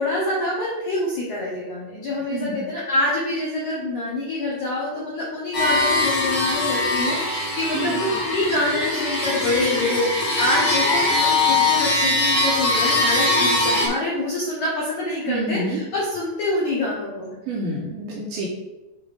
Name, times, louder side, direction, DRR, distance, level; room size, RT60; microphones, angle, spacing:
voice 1, 0.0-17.4, left 2 dB, 85° left, -5 dB, 1.7 m, -26 dB
voice 2, 2.3-2.6 7.7-8.0 15.3-15.8 17.5-18.5, right 2 dB, 75° right, -4 dB, 2.4 m, -28 dB
sound 1, 5.5-13.9, left 2 dB, 35° left, 2.1 m, -21 dB
7.9 x 3.5 x 4.9 m, 1.0 s
omnidirectional pair, 5.3 m